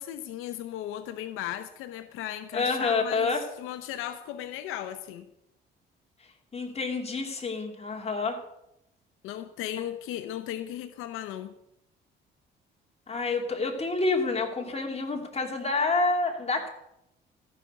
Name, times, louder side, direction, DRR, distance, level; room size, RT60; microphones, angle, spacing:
voice 1, 0.0-5.3 9.2-11.5, left 12 dB, 85° left, 11 dB, 0.7 m, -36 dB
voice 2, 2.5-3.4 6.5-8.4 13.1-16.7, left 3 dB, 30° left, 2 dB, 2.9 m, -28 dB
14.0 x 6.1 x 8.0 m, 0.82 s
supercardioid pair, 75°, 21 cm